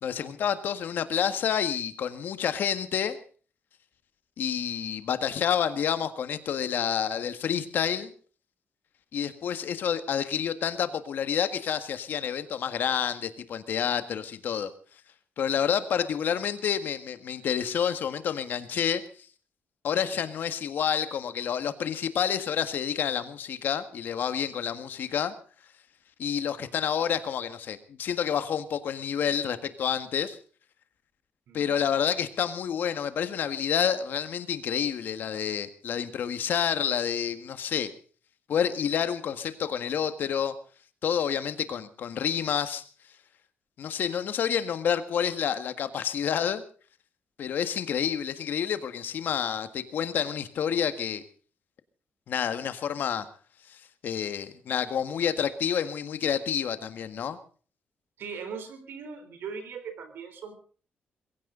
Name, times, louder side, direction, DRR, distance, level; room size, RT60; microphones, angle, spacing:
voice 1, 0.0-3.2 4.4-8.1 9.1-14.7 15.4-19.1 19.8-25.3 26.2-30.4 31.5-37.9 38.5-40.5 41.0-42.9 43.8-46.6 47.4-51.2 52.3-53.3 53.7-57.4, left 8 dB, 60° left, 10 dB, 1.7 m, -29 dB
voice 2, 31.5-31.9 58.2-60.6, right 6 dB, 70° right, 8 dB, 3.8 m, -40 dB
22.5 x 16.0 x 3.9 m, 0.41 s
wide cardioid pair, 175°, 4 cm